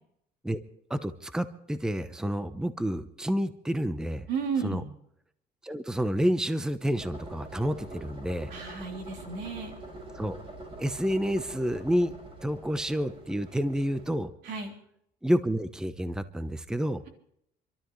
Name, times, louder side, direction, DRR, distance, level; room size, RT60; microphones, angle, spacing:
voice 1, 0.9-4.3 4.6-4.8 5.6-8.5 10.1-10.4 10.8-14.3 15.2-17.0, equal, 5° right, 11 dB, 0.8 m, -29 dB
voice 2, 4.3-4.8 8.5-9.8 14.4-14.7, right 5 dB, 85° right, 0 dB, 3.5 m, -33 dB
sound 1, 7.0-14.1, right 1 dB, 30° right, 6.2 m, -45 dB
28.0 x 13.0 x 3.1 m, 0.73 s
cardioid pair, 110°, 17 cm